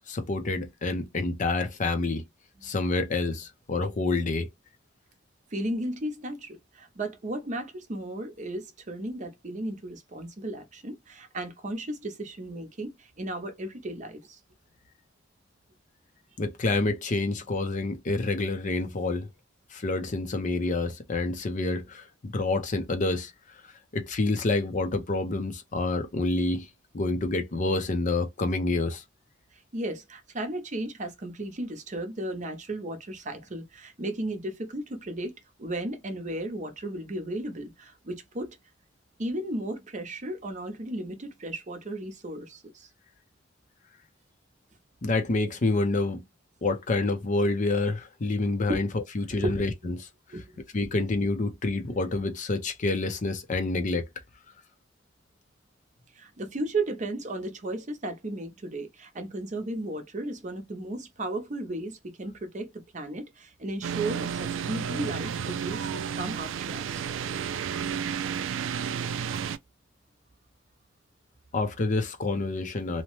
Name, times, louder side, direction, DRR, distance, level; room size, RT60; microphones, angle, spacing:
voice 1, 0.1-2.2 2.6-4.5 16.4-19.3 19.7-23.3 23.9-26.7 26.9-29.0 45.0-46.2 46.6-50.1 50.7-54.1 71.5-73.0, left 2 dB, 40° left, 0.6 m, -28 dB
voice 2, 5.5-14.4 29.5-38.6 39.2-42.9 48.7-48.8 49.4-49.6 50.3-50.6 56.1-67.0, right 1 dB, 40° right, 0.7 m, -35 dB
sound 1, 63.8-69.6, right 7 dB, 85° right, 0.3 m, -32 dB
2.8 x 2.1 x 3.0 m
head